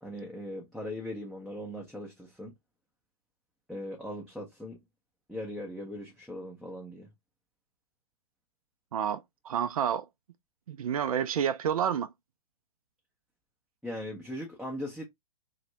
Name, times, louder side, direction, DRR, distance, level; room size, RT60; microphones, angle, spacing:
voice 1, 0.0-2.5 3.7-4.8 5.3-7.1 13.8-15.0, left 1 dB, ahead, 0.5 m, -39 dB
voice 2, 8.9-10.1 10.7-12.1, right 8 dB, 65° right, 0.4 m, -29 dB
2.4 x 2.1 x 3.0 m
figure-of-eight pair, 115°, 20 cm